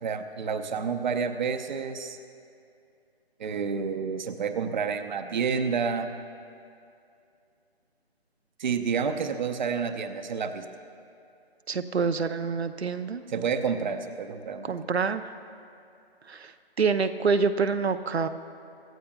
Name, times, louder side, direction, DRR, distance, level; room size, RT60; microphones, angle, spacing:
voice 1, 0.0-2.2 3.4-6.1 8.6-10.7 13.3-14.9, right 6 dB, 45° right, 7 dB, 0.8 m, -29 dB
voice 2, 11.7-13.2 14.7-15.2 16.3-16.5 16.8-18.3, right 5 dB, 85° right, 8 dB, 0.8 m, -26 dB
26.5 x 13.0 x 2.3 m, 2.5 s
figure-of-eight pair, 150°, 31 cm